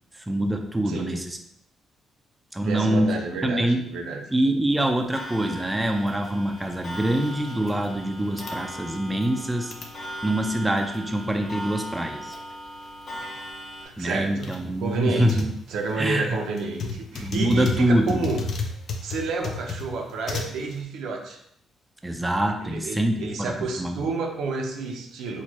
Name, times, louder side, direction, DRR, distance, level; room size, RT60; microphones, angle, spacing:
voice 1, 0.3-1.4 2.5-3.1 3.4-3.8 4.3-9.7 10.2-12.4 14.0-15.5 16.0-16.3 17.1-18.3 22.0-24.1, right 1 dB, 10° right, 4 dB, 0.4 m, -25 dB
voice 2, 0.9-1.2 2.6-4.2 13.8-18.4 19.0-21.4 22.6-25.4, right 4 dB, 80° right, 2 dB, 0.6 m, -30 dB
sound 1, 4.7-20.8, left 4 dB, 60° left, 0.5 m, -37 dB
Clock, 5.1-13.9, equal, 30° left, 1.5 m, -38 dB
4.2 x 2.3 x 2.9 m, 0.72 s
cardioid pair, 90°, 0 cm